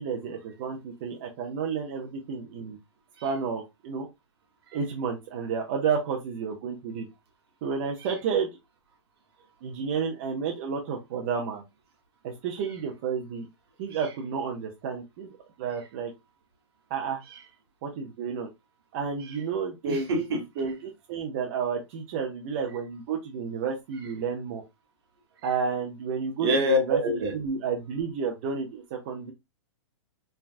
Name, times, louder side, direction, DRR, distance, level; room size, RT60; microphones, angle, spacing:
voice 1, 0.0-2.8 3.2-4.1 4.7-7.1 7.6-8.5 9.6-11.6 12.2-13.5 13.8-15.3 15.6-16.1 16.9-17.2 17.8-18.5 18.9-20.3 20.6-24.6 25.4-27.0 27.3-29.3, right 6 dB, 25° right, 0.4 m, -31 dB
voice 2, 19.8-20.4 26.4-27.3, equal, 55° right, 1.0 m, -26 dB
3.2 x 2.2 x 2.3 m
hypercardioid pair, 165°, 16 cm